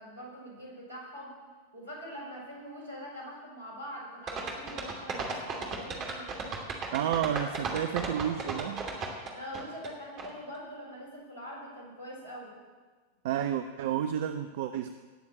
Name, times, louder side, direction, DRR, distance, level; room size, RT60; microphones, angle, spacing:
voice 1, 0.0-1.4 1.7-6.3 9.3-12.6, equal, 75° right, -3 dB, 6.1 m, -43 dB
sound 1, 4.3-9.9 10.2-10.3, right 4 dB, 30° right, 2.7 m, -35 dB
voice 2, 6.9-8.9 13.2-14.9, right 10 dB, 55° right, 9 dB, 0.6 m, -31 dB
18.5 x 7.4 x 7.6 m, 1.4 s
figure-of-eight pair, 90°, 0 cm